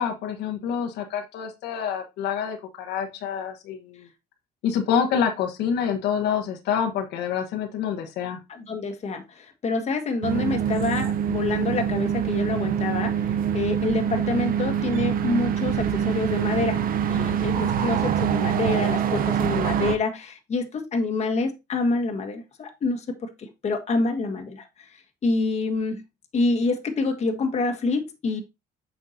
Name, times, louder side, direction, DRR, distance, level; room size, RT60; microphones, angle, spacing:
voice 1, 0.0-4.0 4.6-8.4, left 7 dB, 80° left, 4 dB, 1.4 m, -27 dB
voice 2, 8.5-13.2 13.5-16.8 17.1-25.0 25.2-26.0 26.3-28.4, left 3 dB, 40° left, 4 dB, 1.6 m, -27 dB
sound 1, 10.2-20.0, right 8 dB, 60° right, 0.8 m, -25 dB
8.1 x 5.9 x 2.7 m, 0.24 s
cardioid pair, 110°, 17 cm